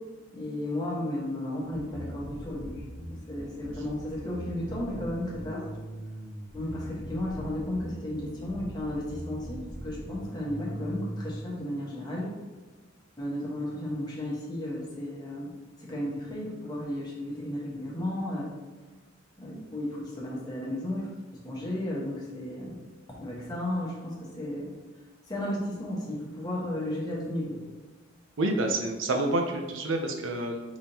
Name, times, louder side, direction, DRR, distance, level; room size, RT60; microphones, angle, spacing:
voice 1, 0.3-2.8 3.1-5.7 6.5-12.3 13.2-15.5 15.8-18.5 19.4-21.1 21.4-22.8 23.2-24.7 25.3-27.6, left 1 dB, 20° left, -5 dB, 1.2 m, -34 dB
Bass guitar, 1.7-11.3, equal, 15° right, 1.1 m, -41 dB
voice 2, 28.4-30.6, right 2 dB, 80° right, 3 dB, 0.6 m, -28 dB
4.9 x 3.6 x 2.8 m, 1.3 s
head